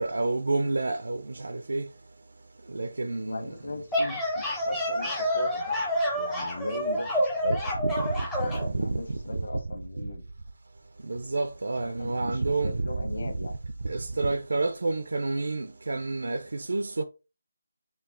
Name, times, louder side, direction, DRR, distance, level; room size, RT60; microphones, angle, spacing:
voice 1, 0.0-1.9 2.7-3.5 7.8-9.2 11.0-12.9 13.8-17.0, right 3 dB, 60° right, 0.5 m, -29 dB
voice 2, 3.2-5.7 6.1-7.5 8.6-10.2 11.8-13.5, left 2 dB, 50° left, 1.3 m, -38 dB
sound 1, 3.7-8.7, equal, 5° left, 0.5 m, -28 dB
4.7 x 2.7 x 3.7 m
figure-of-eight pair, 180°, 0 cm